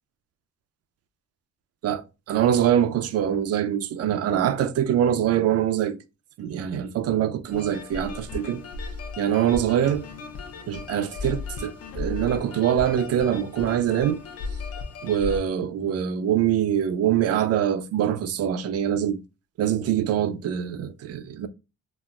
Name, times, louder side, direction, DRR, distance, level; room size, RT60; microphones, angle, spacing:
voice 1, 2.3-6.0 6.4-8.6 9.2-10.1 10.7-14.2 15.0-19.2 19.6-21.5, right 10 dB, 55° right, 0.4 m, -24 dB
sound 1, 7.5-15.4, left 4 dB, 55° left, 0.6 m, -36 dB
4.0 x 2.0 x 2.3 m
cardioid pair, 90°, 30 cm